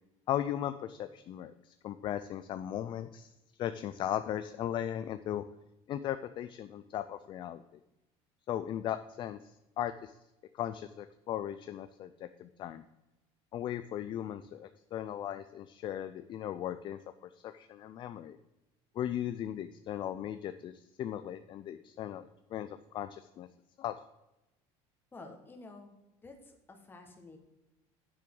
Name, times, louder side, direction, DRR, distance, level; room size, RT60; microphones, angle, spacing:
voice 1, 0.3-3.3 3.6-5.4 5.9-7.6 8.5-10.1 10.5-12.8 13.5-18.4 19.0-23.5 23.8-23.9, left 11 dB, 35° left, 10 dB, 0.4 m, -37 dB
voice 2, 25.1-25.9 26.2-27.4, left 3 dB, 15° left, 4 dB, 1.5 m, -50 dB
9.7 x 7.4 x 3.9 m, 0.96 s
cardioid pair, 140°, 13 cm